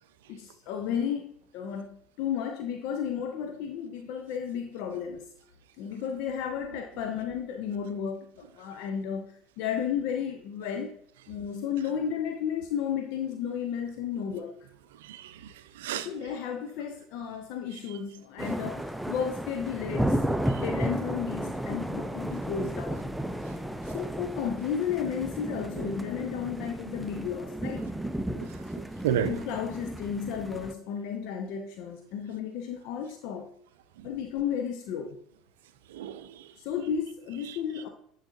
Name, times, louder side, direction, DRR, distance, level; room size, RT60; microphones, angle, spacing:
voice 1, 0.3-1.3 1.5-5.2 5.8-10.9 11.3-14.5 15.9-20.2 20.5-23.1 23.9-27.9 29.2-33.5 34.0-35.2 36.6-37.9, left 8 dB, 60° left, 5 dB, 0.5 m, -33 dB
voice 2, 15.0-16.1 20.5-20.6 28.4-28.5 29.0-29.4 35.9-36.5 37.5-37.6, right 9 dB, 75° right, 12 dB, 0.4 m, -32 dB
sound 1, 18.4-30.7, right 1 dB, 5° right, 0.4 m, -33 dB
9.5 x 4.0 x 2.6 m, 0.69 s
hypercardioid pair, 70°, 0 cm